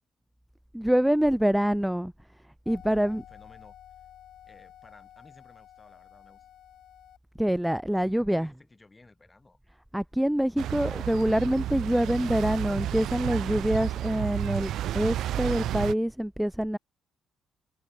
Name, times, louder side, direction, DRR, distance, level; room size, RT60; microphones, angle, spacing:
voice 1, 0.7-2.1 2.7-3.2 7.4-8.5 9.9-16.8, equal, 5° right, 0.4 m, -26 dB
sound 1, 2.6-7.2, left 11 dB, 65° left, 1.2 m, -51 dB
voice 2, 2.8-3.8 4.5-6.5 8.0-9.6 10.8-11.6, left 3 dB, 20° left, 5.2 m, -55 dB
sound 2, 10.6-15.9, right 12 dB, 75° right, 0.4 m, -31 dB
cardioid pair, 120°, 0 cm